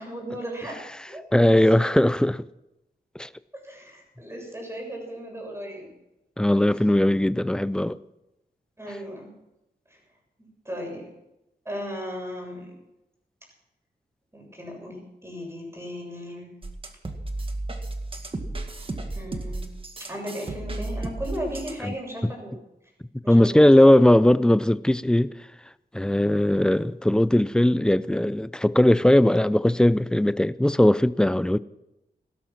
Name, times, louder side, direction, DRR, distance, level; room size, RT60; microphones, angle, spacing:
voice 1, 0.0-1.2 3.6-5.9 8.8-9.3 9.9-10.0 10.6-11.0 11.7-12.7 14.3-16.6 19.1-22.6 23.2-24.0, equal, 15° right, 7.4 m, -36 dB
voice 2, 1.3-2.5 3.2-3.3 6.4-8.0 21.8-21.9 23.3-25.3 25.9-31.6, left 1 dB, 5° left, 0.5 m, -19 dB
sound 1, 16.6-21.9, right 2 dB, 30° right, 1.9 m, -33 dB
17.5 x 12.5 x 6.1 m
wide cardioid pair, 105°, 17 cm